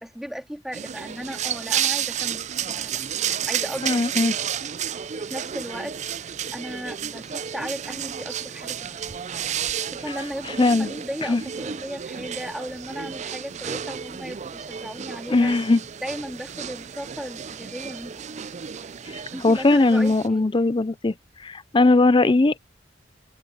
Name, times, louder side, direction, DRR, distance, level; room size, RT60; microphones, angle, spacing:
voice 1, 0.0-3.0 3.5-4.3 5.1-9.2 9.9-15.5 16.0-18.5 19.3-20.5, equal, ahead, 3.6 m, -36 dB
sound 1, 0.7-20.3, right 9 dB, 40° right, 0.4 m, -32 dB
voice 2, 3.8-4.3 10.6-10.9 11.3-11.4 15.3-15.8 19.4-21.1 21.4-22.6, left 2 dB, 25° left, 0.5 m, -19 dB
head